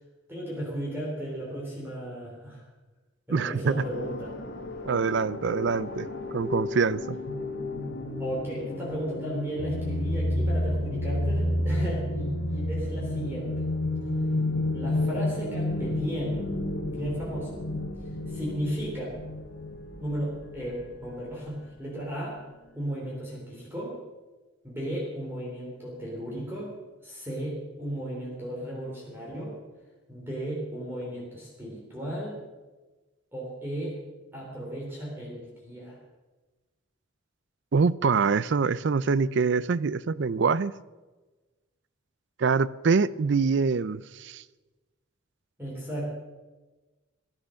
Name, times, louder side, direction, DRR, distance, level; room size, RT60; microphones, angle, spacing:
voice 1, 0.3-2.6 3.3-4.3 8.2-13.7 14.7-16.4 16.9-17.6 18.3-19.2 20.0-22.4 22.7-24.0 24.6-26.7 27.0-29.6 30.1-32.4 33.3-34.0 34.3-36.0 45.6-46.1, equal, 10° right, -5 dB, 3.4 m, -35 dB
voice 2, 3.3-3.8 4.9-6.1 6.3-7.2 37.7-40.7 42.4-44.4, right 5 dB, 60° right, 19 dB, 0.4 m, -25 dB
sound 1, 3.7-20.9, left 1 dB, 55° left, 1.6 m, -31 dB
15.5 x 10.5 x 6.4 m, 1.2 s
head